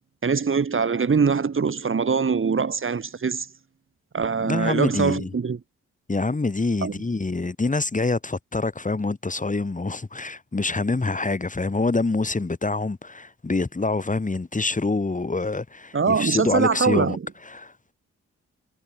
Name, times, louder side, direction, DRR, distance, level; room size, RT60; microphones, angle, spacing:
voice 1, 0.2-3.5 4.1-5.6 6.8-6.9 15.9-17.2, right 5 dB, 45° right, 3.5 m, -23 dB
voice 2, 4.4-5.3 6.1-17.2 17.5-17.7, left 3 dB, 25° left, 5.7 m, -26 dB
cardioid pair, 65°, 29 cm